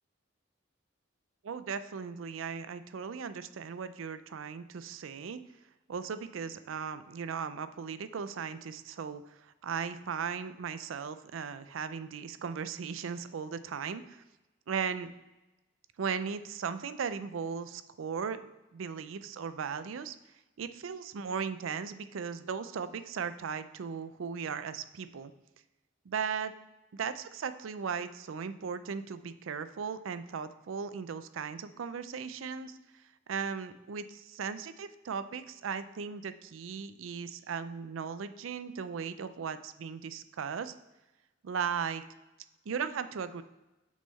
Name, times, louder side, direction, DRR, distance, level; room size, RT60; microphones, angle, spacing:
voice 1, 1.4-5.4 5.9-14.2 14.7-15.1 16.0-18.4 18.7-20.2 20.6-25.3 26.1-26.5 26.9-32.8 33.3-40.7 41.4-42.0 42.7-43.4, right 6 dB, 85° right, 12 dB, 0.4 m, -37 dB
6.2 x 5.6 x 4.0 m, 1.1 s
head